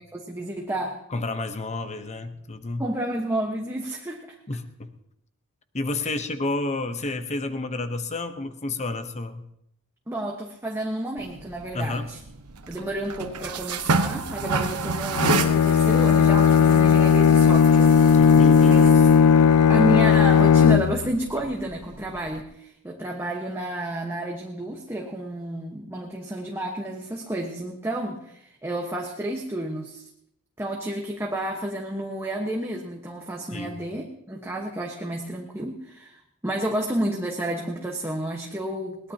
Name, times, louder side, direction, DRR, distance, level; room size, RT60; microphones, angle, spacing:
voice 1, 0.0-1.0 2.8-4.4 10.1-12.2 12.7-18.0 18.6-18.9 19.7-30.0 30.6-39.1, right 1 dB, 10° right, 0 dB, 1.2 m, -30 dB
voice 2, 1.1-2.9 4.5-4.9 5.7-9.5 11.7-12.1 18.1-18.8 33.5-33.8, left 2 dB, 30° left, 9 dB, 0.9 m, -30 dB
sound 1, 11.2-22.4, right 3 dB, 90° right, 1.0 m, -31 dB
Bowed string instrument, 15.2-21.1, left 7 dB, 85° left, 0.5 m, -16 dB
21.5 x 18.0 x 2.9 m, 0.77 s
head